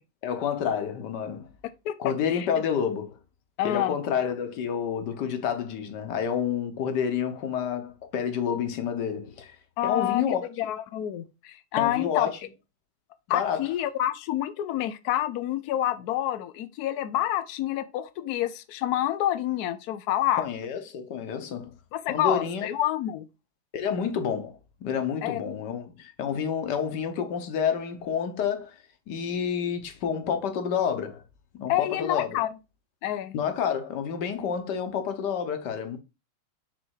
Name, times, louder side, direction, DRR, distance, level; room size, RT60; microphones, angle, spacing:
voice 1, 0.2-1.5 2.0-3.2 3.6-9.6 9.8-10.5 11.8-12.4 13.3-13.7 20.4-21.7 22.1-22.7 23.7-28.7 29.1-31.2 31.5-32.4 33.3-36.0, left 7 dB, 60° left, 1.4 m, -29 dB
voice 2, 3.6-4.0 9.8-10.2 10.6-12.3 13.3-20.5 21.9-23.2 25.2-25.4 31.7-32.5 33.0-33.3, left 13 dB, 85° left, 0.8 m, -28 dB
6.5 x 3.5 x 4.6 m
omnidirectional pair, 2.3 m